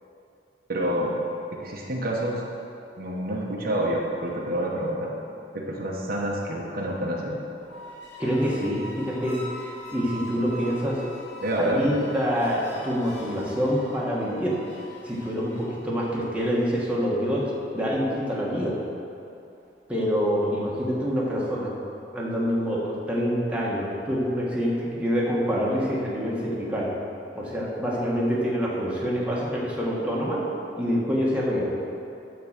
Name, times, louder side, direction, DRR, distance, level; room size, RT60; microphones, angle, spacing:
voice 1, 0.7-1.2 1.5-2.4 3.0-5.1 5.5-7.4 11.4-11.9, right 1 dB, 55° right, -2 dB, 1.1 m, -28 dB
sound 1, 7.5-16.9, left 1 dB, 75° left, 2.1 m, -43 dB
voice 2, 8.2-9.4 9.9-11.0 11.6-14.5 15.0-18.8 19.9-21.7 22.1-26.9 27.3-30.4 30.7-31.7, equal, 5° right, -6 dB, 1.4 m, -26 dB
10.5 x 3.9 x 7.3 m, 2.7 s
head